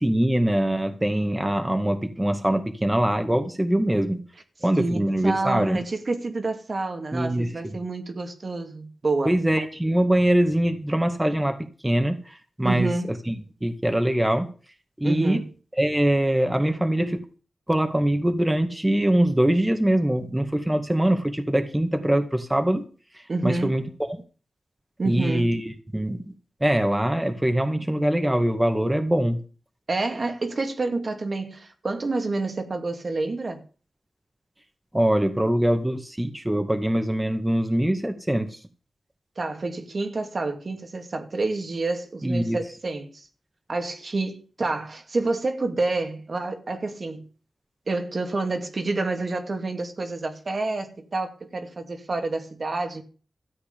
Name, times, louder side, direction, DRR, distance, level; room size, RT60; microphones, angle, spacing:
voice 1, 0.0-4.2 4.6-5.8 7.1-7.5 9.3-11.6 11.8-12.9 13.3-14.5 15.0-15.4 15.8-17.2 17.7-22.8 23.4-24.2 25.0-26.2 26.6-29.4 34.9-38.5 42.2-42.6, right 1 dB, 15° right, 2.1 m, -23 dB
voice 2, 4.8-9.3 12.6-13.1 15.0-15.5 23.3-23.8 25.0-25.5 29.9-33.6 39.4-43.2 43.7-47.3 47.9-53.0, right 3 dB, 55° right, 2.5 m, -28 dB
13.5 x 8.2 x 6.9 m
cardioid pair, 55°, 0 cm